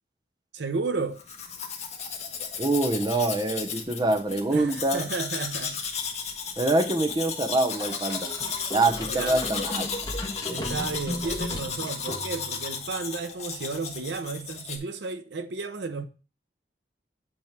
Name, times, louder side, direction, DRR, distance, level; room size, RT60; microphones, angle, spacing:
voice 1, 0.5-1.2 4.5-5.8 9.1-9.4 10.5-16.1, right 4 dB, 80° right, 0.7 m, -33 dB
Domestic sounds home sounds, 1.2-14.8, left 6 dB, 40° left, 1.5 m, -34 dB
voice 2, 2.6-5.1 6.6-8.3 8.7-9.9, right 2 dB, 25° right, 0.8 m, -25 dB
sound 1, 7.8-12.6, left 1 dB, 20° left, 1.6 m, -35 dB
8.8 x 3.2 x 5.9 m
head